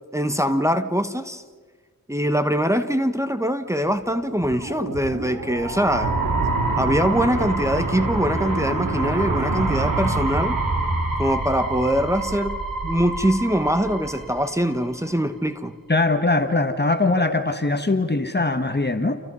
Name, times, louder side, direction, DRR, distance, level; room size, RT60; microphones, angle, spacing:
voice 1, 0.1-1.4 2.1-6.2 6.8-10.6 11.2-15.7, equal, 10° right, 1.3 m, -23 dB
sound 1, 4.2-15.1, right 2 dB, 90° right, 3.4 m, -26 dB
voice 2, 15.9-19.2, left 2 dB, 30° left, 1.6 m, -21 dB
29.5 x 28.5 x 5.6 m
wide cardioid pair, 70°, 33 cm